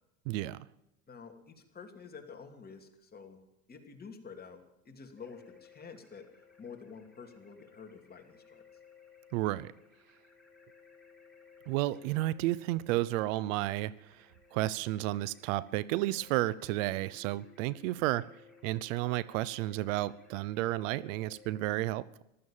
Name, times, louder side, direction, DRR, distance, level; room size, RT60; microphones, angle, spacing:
voice 1, 0.3-0.6 9.3-9.7 11.7-14.3 14.5-18.3 18.6-22.2, right 16 dB, 75° right, 0.7 m, -32 dB
voice 2, 1.1-3.4 3.7-8.6, left 5 dB, 25° left, 2.8 m, -49 dB
sound 1, 5.2-21.6, left 6 dB, ahead, 3.2 m, -59 dB
15.5 x 12.5 x 7.3 m
supercardioid pair, 105°, 39 cm